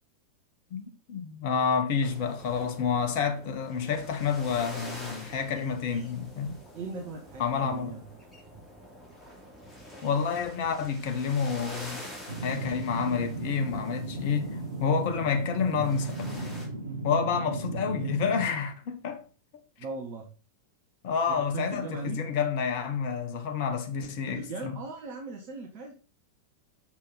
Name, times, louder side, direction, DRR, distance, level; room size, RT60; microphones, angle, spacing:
voice 1, 0.7-6.6 7.4-8.0 10.0-12.0 12.4-16.5 17.0-19.2 21.0-24.8, left 6 dB, 45° left, 1.3 m, -29 dB
sound 1, 2.0-16.7, equal, 10° left, 2.9 m, -46 dB
voice 2, 6.7-8.2 19.8-20.3 21.3-22.2 24.2-25.9, right 3 dB, 45° right, 1.3 m, -39 dB
sound 2, 12.3-18.5, right 2 dB, 75° right, 1.2 m, -35 dB
6.3 x 5.9 x 4.1 m
figure-of-eight pair, 90°, 0 cm